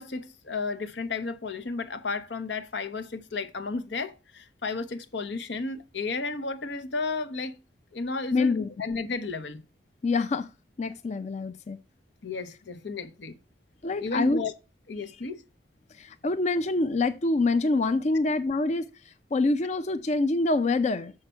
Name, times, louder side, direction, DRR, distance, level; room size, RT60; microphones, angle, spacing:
voice 1, 0.0-7.6 7.9-9.6 12.2-13.4 14.0-14.5 14.9-15.4, left 3 dB, 85° left, 0.9 m, -33 dB
voice 2, 8.3-8.7 10.0-10.5 10.8-11.8 13.8-14.4 16.0-21.1, left 3 dB, 40° left, 0.4 m, -26 dB
6.7 x 5.7 x 5.6 m
head